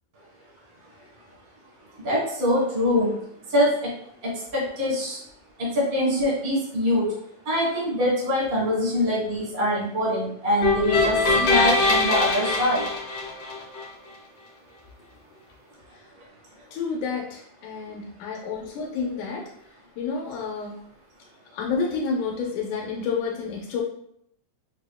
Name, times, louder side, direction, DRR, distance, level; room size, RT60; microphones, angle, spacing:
voice 1, 2.0-3.9 4.2-5.2 5.6-7.2 7.4-12.9 17.9-18.0, left 1 dB, 55° right, -5 dB, 0.6 m, -24 dB
sound 1, 10.6-13.8, left 3 dB, 65° left, 1.6 m, -22 dB
voice 2, 16.7-19.5 20.0-20.8 21.5-23.8, left 5 dB, 85° left, -2 dB, 2.1 m, -29 dB
5.9 x 2.1 x 2.3 m, 0.70 s
omnidirectional pair, 3.4 m